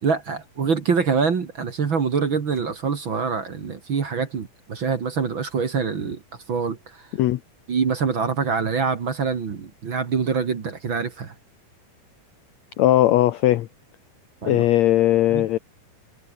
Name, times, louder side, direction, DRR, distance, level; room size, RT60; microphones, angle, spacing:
voice 1, 0.0-6.2 6.5-7.1 7.7-11.3 14.4-14.6 15.3-15.6, right 5 dB, 40° right, 2.1 m, -25 dB
voice 2, 12.8-13.7 14.5-15.6, left 14 dB, 80° left, 1.6 m, -18 dB
omnidirectional pair, 4.2 m